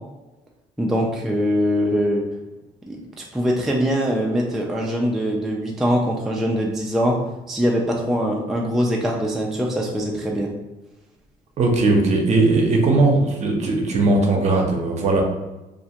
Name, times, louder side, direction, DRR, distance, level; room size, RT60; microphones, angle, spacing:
voice 1, 0.8-2.2 2.9-7.2 7.5-10.5, equal, ahead, -1 dB, 0.3 m, -22 dB
voice 2, 11.6-15.2, right 2 dB, 45° right, 1 dB, 0.6 m, -18 dB
2.5 x 2.2 x 2.8 m, 1.0 s
cardioid pair, 110°, 17 cm